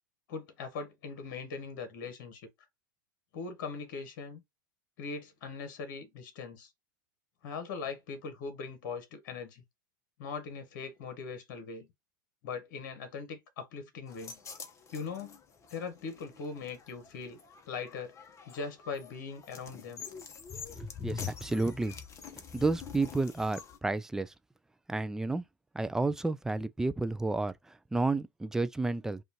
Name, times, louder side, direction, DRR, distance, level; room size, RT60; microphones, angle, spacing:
voice 1, 0.3-2.5 3.3-4.4 5.0-6.7 7.4-9.6 10.2-11.9 12.4-14.3 14.9-15.4 15.7-17.4 17.7-18.1 18.5-20.0, left 5 dB, 60° left, 1.2 m, -40 dB
sound 1, 14.1-23.8, left 7 dB, 30° left, 0.9 m, -46 dB
voice 2, 20.8-21.9 22.5-24.3 24.9-25.4 25.7-29.2, right 3 dB, 5° right, 0.3 m, -31 dB
5.0 x 2.5 x 2.9 m
hypercardioid pair, 90°, 10 cm